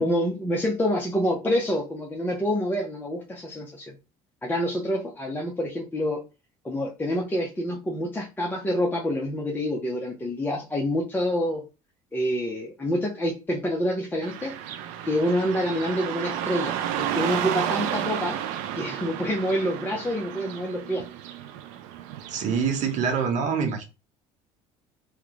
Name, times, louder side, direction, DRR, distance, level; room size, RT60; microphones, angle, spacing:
voice 1, 0.0-3.9 4.4-6.2 6.6-11.6 12.1-14.6 15.0-18.4 18.7-21.0, equal, 15° left, 0.7 m, -27 dB
Car passing by / Traffic noise roadway noise, 14.2-23.2, right 10 dB, 80° right, 0.5 m, -32 dB
voice 2, 22.3-23.8, right 6 dB, 60° right, 1.0 m, -25 dB
3.0 x 2.2 x 3.9 m
supercardioid pair, 100°, 14 cm